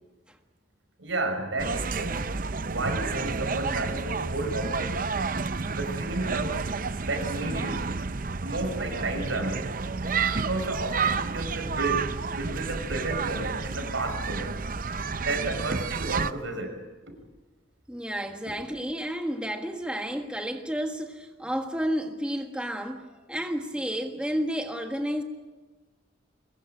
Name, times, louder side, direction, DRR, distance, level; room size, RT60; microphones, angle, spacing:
voice 1, 1.0-2.3 2.7-5.0 5.7-6.7 7.0-8.0 8.4-9.7 10.3-14.6 15.2-16.8, right 2 dB, 85° right, 6 dB, 5.6 m, -32 dB
sound 1, 1.6-16.3, right 4 dB, 45° right, 0.7 m, -30 dB
voice 2, 17.9-25.2, equal, 5° right, 4 dB, 1.6 m, -31 dB
23.0 x 21.0 x 9.0 m, 1.2 s
head